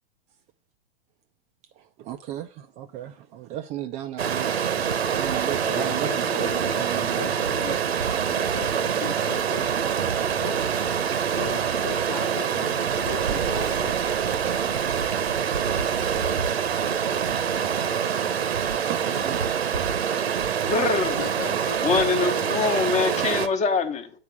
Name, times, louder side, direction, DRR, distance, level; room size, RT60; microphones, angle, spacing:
voice 1, 1.8-4.6 5.1-7.3 18.2-19.4, right 12 dB, 25° right, 0.3 m, -35 dB
Stream, 4.2-23.5, right 7 dB, 85° right, 0.9 m, -25 dB
voice 2, 5.6-7.8 8.3-9.7 10.3-10.6 11.3-14.0 21.2-22.5, left 7 dB, 50° left, 1.0 m, -37 dB
sound 1, 13.2-15.3, right 7 dB, 50° right, 0.6 m, -38 dB
voice 3, 20.6-21.2 21.8-24.1, left 4 dB, 20° left, 1.0 m, -24 dB
8.3 x 4.7 x 5.9 m
hypercardioid pair, 115°, 31 cm